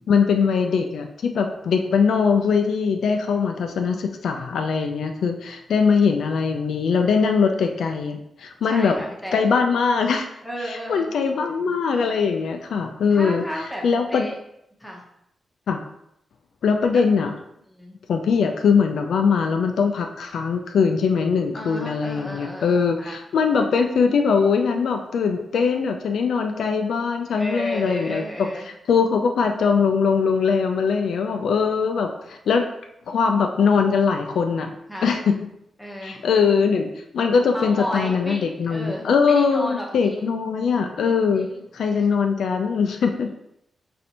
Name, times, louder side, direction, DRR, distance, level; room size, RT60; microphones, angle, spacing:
voice 1, 0.1-9.0 9.3-10.3 10.6-13.4 13.8-14.3 15.7-15.8 16.6-17.3 18.1-32.6 33.1-34.7 35.0-35.4 36.0-41.5 41.7-43.3, left 5 dB, 80° left, 5 dB, 0.4 m, -21 dB
voice 2, 8.6-9.4 10.4-11.1 13.1-13.8 14.1-14.4 14.8-15.0 16.9-17.0 17.7-18.0 21.5-23.1 27.3-28.7 34.9-35.1 35.8-36.2 37.5-40.3 41.3-41.6 41.9-42.1, left 1 dB, 5° left, -2 dB, 0.8 m, -33 dB
4.2 x 3.2 x 2.8 m, 0.78 s
wide cardioid pair, 155°, 0 cm